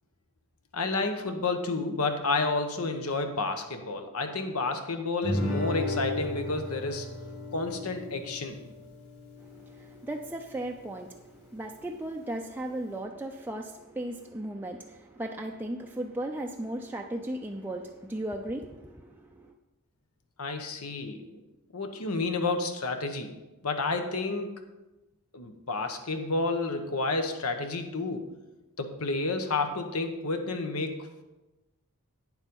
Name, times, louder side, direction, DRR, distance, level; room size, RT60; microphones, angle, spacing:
voice 1, 0.7-7.1 7.5-8.6 20.4-21.4 21.7-23.3 23.6-24.5 25.3-28.3 28.8-31.2, left 3 dB, 75° left, 6 dB, 1.1 m, -30 dB
Guitar, 5.2-10.3, left 1 dB, 50° left, 2.5 m, -34 dB
voice 2, 9.5-19.5, right 1 dB, 10° right, 1 dB, 0.4 m, -36 dB
9.1 x 7.3 x 5.4 m, 1.0 s
head